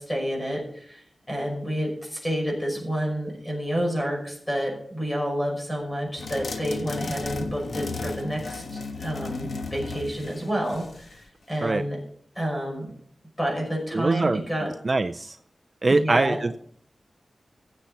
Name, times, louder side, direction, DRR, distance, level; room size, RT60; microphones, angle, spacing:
voice 1, 0.0-12.0 12.4-12.9 13.4-14.7 15.9-16.4, equal, 15° left, 0 dB, 5.6 m, -29 dB
sound 1, 6.2-11.2, left 3 dB, 75° left, 1.4 m, -34 dB
voice 2, 13.9-14.4 14.8-15.4 15.8-16.6, right 3 dB, 35° right, 9 dB, 0.4 m, -22 dB
16.5 x 7.3 x 4.2 m, 0.62 s
wide cardioid pair, 130°, 0 cm